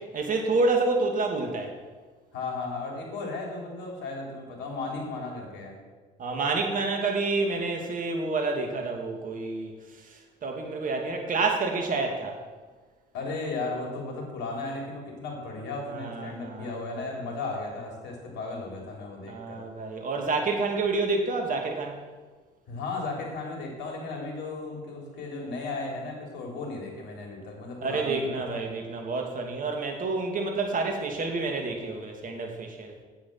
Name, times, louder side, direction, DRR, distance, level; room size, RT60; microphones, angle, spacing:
voice 1, 0.1-1.7 6.2-9.7 10.0-12.4 15.9-16.7 19.3-22.0 27.8-32.9, right 3 dB, 45° right, 3 dB, 2.5 m, -28 dB
voice 2, 2.3-5.8 13.1-19.6 22.7-28.6, left 3 dB, 60° left, 0 dB, 3.6 m, -35 dB
8.5 x 8.1 x 7.7 m, 1.4 s
hypercardioid pair, 65°, 20 cm